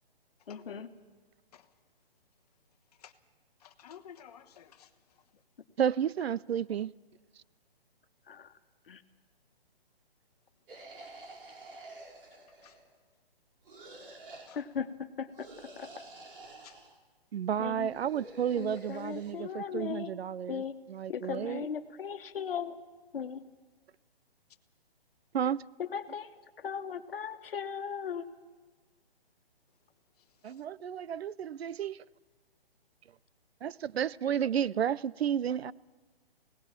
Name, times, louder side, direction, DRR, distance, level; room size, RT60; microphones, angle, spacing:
voice 1, 0.5-0.9 8.3-8.5 8.9-9.0 14.5-15.9 17.6-17.9 18.6-20.1 20.5-20.8 21.1-22.8 23.1-23.4 25.8-26.3 26.6-28.2, left 7 dB, 65° left, 1.5 m, -37 dB
voice 2, 3.6-4.9 12.6-12.8 14.5-14.6 16.6-16.8 30.4-30.5, left 9 dB, 40° left, 1.3 m, -52 dB
voice 3, 5.8-6.9 17.3-21.7 25.3-25.6 30.4-32.0 33.6-35.7, right 9 dB, 80° right, 0.6 m, -32 dB
sound 1, 10.7-13.0 13.6-14.5 15.3-17.0 17.8-19.3, right 2 dB, 60° right, 4.3 m, -49 dB
26.0 x 18.0 x 5.9 m
hypercardioid pair, 155°, 31 cm